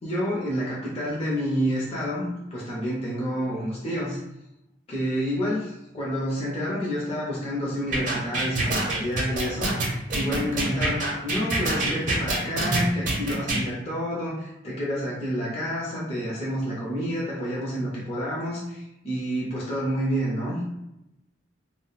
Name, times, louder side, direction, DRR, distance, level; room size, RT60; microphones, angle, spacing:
voice 1, 0.0-4.2 4.9-20.6, equal, 30° left, -6 dB, 0.5 m, -29 dB
sound 1, 7.9-13.6, right 2 dB, 40° right, 0.6 m, -25 dB
2.3 x 2.1 x 3.8 m, 0.89 s
head